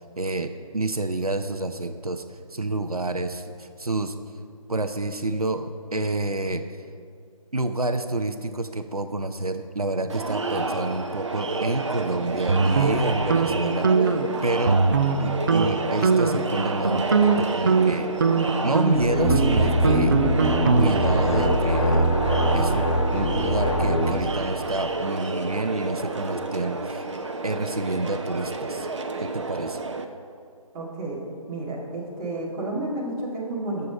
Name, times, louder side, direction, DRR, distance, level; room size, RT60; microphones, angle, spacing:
voice 1, 0.2-4.1 4.7-6.6 7.5-13.9 14.4-14.8 15.2-18.1 18.6-20.2 20.7-22.1 22.5-22.9 23.1-27.1 27.4-28.9 29.2-29.8, right 2 dB, 85° right, 8 dB, 0.7 m, -28 dB
Crowd, 10.1-30.0, right 3 dB, 55° right, 0.9 m, -30 dB
sound 1, 12.5-13.5 13.8-14.3 14.7-15.2 15.5-15.7 16.0-16.5 16.9-21.2, right 4 dB, 35° right, 0.6 m, -21 dB
sound 2, 18.9-24.2, equal, 55° left, 2.9 m, -22 dB
voice 2, 30.7-31.2 31.5-33.9, right 2 dB, 15° right, -5 dB, 1.9 m, -31 dB
13.5 x 7.0 x 5.0 m, 2.3 s
figure-of-eight pair, 150°, 19 cm